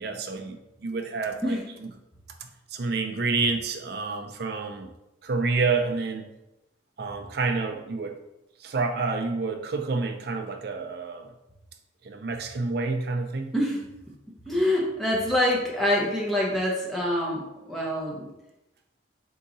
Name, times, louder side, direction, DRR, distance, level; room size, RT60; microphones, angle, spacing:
voice 1, 0.0-1.6 2.7-4.9 5.2-6.3 7.0-8.2 8.6-11.3 12.0-13.5, right 4 dB, 55° right, 5 dB, 0.4 m, -28 dB
voice 2, 13.5-13.8 14.5-18.3, left 1 dB, ahead, -4 dB, 0.7 m, -25 dB
3.7 x 2.8 x 3.9 m, 0.93 s
head